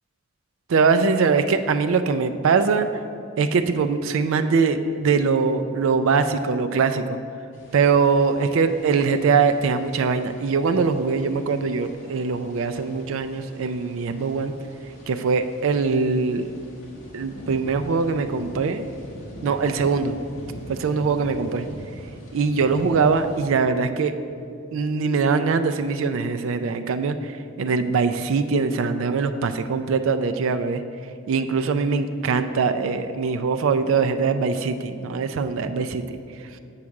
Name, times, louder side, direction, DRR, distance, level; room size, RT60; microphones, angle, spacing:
voice 1, 0.7-2.9 3.4-7.2 7.7-14.5 15.1-16.5 17.1-18.9 19.4-20.2 20.7-21.6 22.3-24.1 24.7-30.8 31.3-36.2, right 5 dB, 65° right, 9 dB, 0.4 m, -22 dB
sound 1, 7.5-23.5, equal, 70° left, 1.6 m, -42 dB
7.1 x 4.8 x 6.3 m, 2.6 s
head